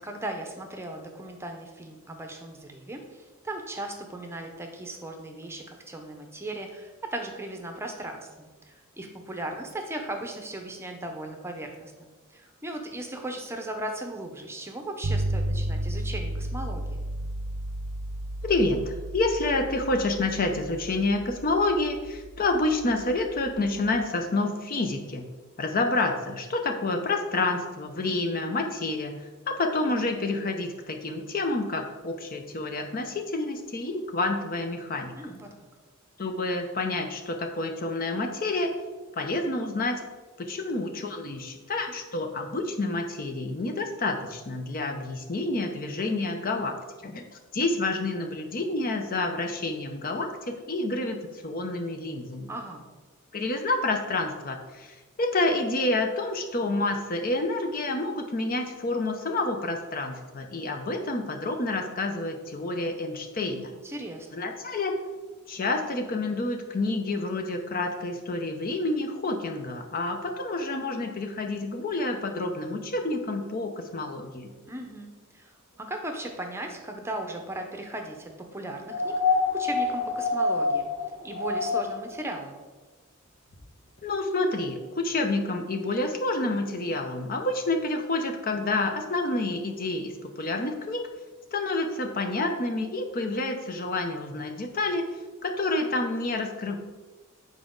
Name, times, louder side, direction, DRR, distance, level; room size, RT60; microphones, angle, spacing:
voice 1, 0.0-17.1 35.2-35.5 52.5-52.8 63.8-64.3 74.7-75.5 75.8-80.9 81.2-82.6, right 1 dB, 10° right, 4 dB, 0.7 m, -37 dB
sound 1, 15.0-24.0, right 1 dB, 60° right, 0.5 m, -33 dB
voice 2, 18.4-25.3 25.6-29.2 29.5-35.2 36.2-38.7 39.1-40.0 40.4-51.2 51.4-52.5 53.3-63.7 64.3-65.0 65.5-74.5 84.0-91.1 91.5-95.0 95.4-96.8, left 2 dB, 45° left, 5 dB, 0.6 m, -28 dB
sound 2, 78.9-82.1 83.5-83.6, left 3 dB, 75° left, 1.4 m, -26 dB
7.4 x 4.8 x 3.8 m, 1.3 s
head